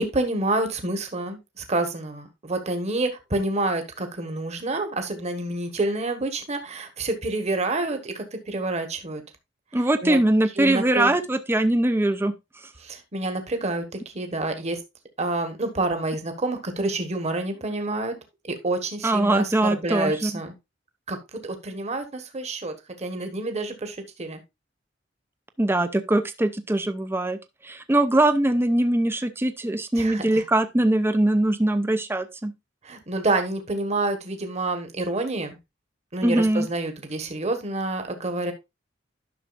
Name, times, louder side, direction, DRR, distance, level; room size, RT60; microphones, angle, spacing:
voice 1, 0.0-9.2 9.7-10.2 10.6-11.2 12.8-14.8 15.2-18.2 18.6-20.5 21.1-24.4 30.0-30.4 32.8-35.6 36.1-38.5, right 2 dB, 35° right, 1.2 m, -28 dB
voice 2, 9.7-12.3 19.0-20.3 25.6-27.4 27.6-32.5 36.2-36.7, right 1 dB, 10° right, 0.5 m, -22 dB
11.0 x 6.1 x 2.4 m
head